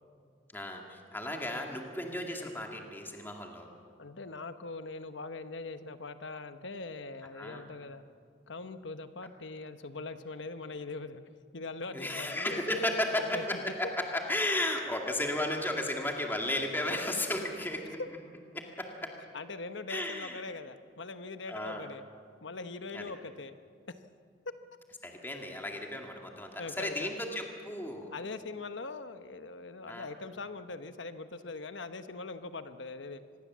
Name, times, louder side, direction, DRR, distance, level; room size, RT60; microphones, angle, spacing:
voice 1, 0.5-3.7 7.4-7.6 11.9-18.0 18.5-19.1 19.9-20.4 21.5-21.9 22.9-23.1 25.0-28.1 29.9-30.1, left 1 dB, 10° left, 1 dB, 2.1 m, -34 dB
voice 2, 4.0-8.0 8.5-11.2 11.5-13.9 19.3-22.0 22.4-23.5 26.6-27.2 28.1-33.2, left 3 dB, 75° left, 10 dB, 1.1 m, -42 dB
25.0 x 20.5 x 7.4 m, 2.3 s
head